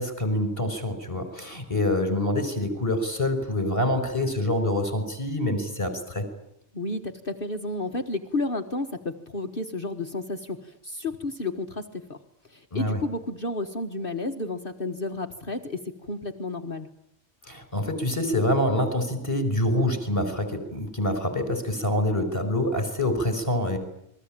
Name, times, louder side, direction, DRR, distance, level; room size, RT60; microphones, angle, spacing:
voice 1, 0.0-6.3 12.7-13.0 17.4-23.8, left 1 dB, 25° left, 8 dB, 5.5 m, -26 dB
voice 2, 6.7-12.2 12.5-16.9, left 2 dB, 45° left, 4 dB, 1.6 m, -32 dB
28.5 x 22.0 x 8.9 m, 0.79 s
omnidirectional pair, 1.3 m